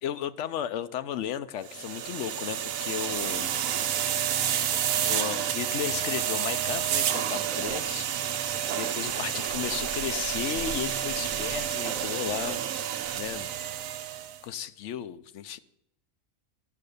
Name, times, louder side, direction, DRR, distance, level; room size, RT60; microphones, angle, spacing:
voice 1, 0.0-3.6 4.4-4.5 5.0-12.9 13.2-13.5 14.4-15.6, left 10 dB, 65° left, 13 dB, 0.9 m, -35 dB
sound 1, 1.7-14.4, right 9 dB, 85° right, 1.1 m, -30 dB
12.5 x 6.6 x 6.6 m, 0.85 s
omnidirectional pair, 1.4 m